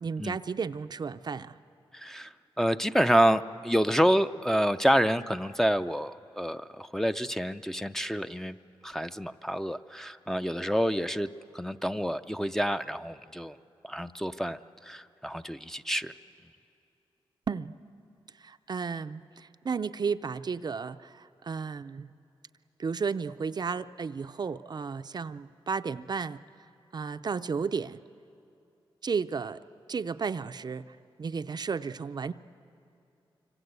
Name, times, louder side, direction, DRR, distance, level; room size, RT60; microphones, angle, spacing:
voice 1, 0.0-1.6 17.5-17.8 18.4-22.1 22.8-26.4 26.9-28.0 29.0-29.6 29.9-32.3, right 5 dB, 45° right, 11 dB, 0.5 m, -33 dB
voice 2, 1.9-8.6 8.8-13.6 13.8-16.1, equal, 5° left, 7 dB, 0.5 m, -28 dB
25.5 x 25.0 x 8.1 m, 2.6 s
cardioid pair, 80°, 10 cm